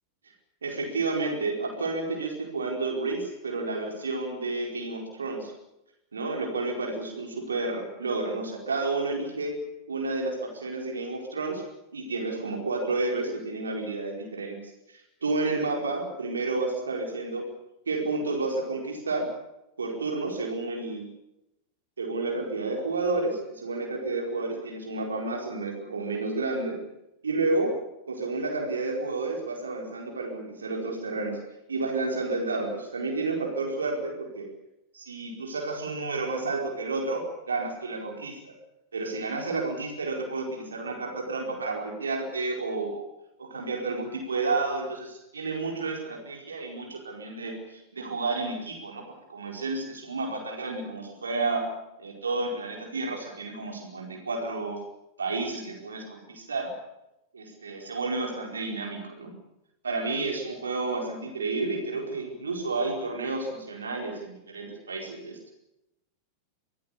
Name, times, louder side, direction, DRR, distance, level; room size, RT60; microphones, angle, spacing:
voice 1, 0.6-5.5 6.1-9.6 9.9-11.6 11.9-14.6 14.9-17.5 17.9-19.3 19.8-21.1 22.0-26.8 27.2-31.4 31.7-34.5 34.9-38.5 38.9-43.1 43.4-54.8 55.2-56.7 57.3-59.4 59.8-65.4, right 3 dB, 70° right, 1 dB, 4.7 m, -31 dB
25.0 x 18.0 x 8.5 m, 0.89 s
figure-of-eight pair, 90°, 0 cm